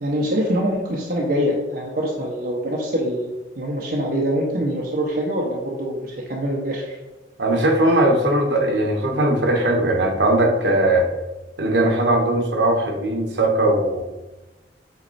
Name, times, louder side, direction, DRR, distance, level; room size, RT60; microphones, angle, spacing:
voice 1, 0.0-7.0, equal, 55° right, -3 dB, 0.9 m, -24 dB
voice 2, 7.4-11.1 11.6-14.0, right 1 dB, 75° right, 1 dB, 1.3 m, -19 dB
8.2 x 3.2 x 4.2 m, 1.1 s
head